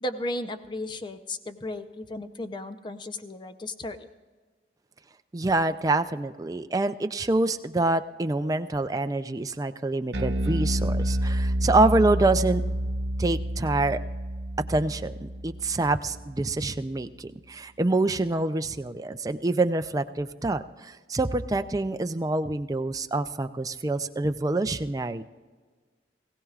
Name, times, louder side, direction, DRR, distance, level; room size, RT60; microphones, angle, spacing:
voice 1, 0.0-4.1, left 1 dB, 25° left, 9 dB, 0.7 m, -35 dB
voice 2, 5.3-12.6 13.2-14.0 14.7-25.2, right 2 dB, 20° right, 9 dB, 0.4 m, -26 dB
Bass guitar, 10.1-16.6, right 1 dB, 90° right, 1.0 m, -29 dB
20.0 x 16.5 x 2.4 m, 1.4 s
head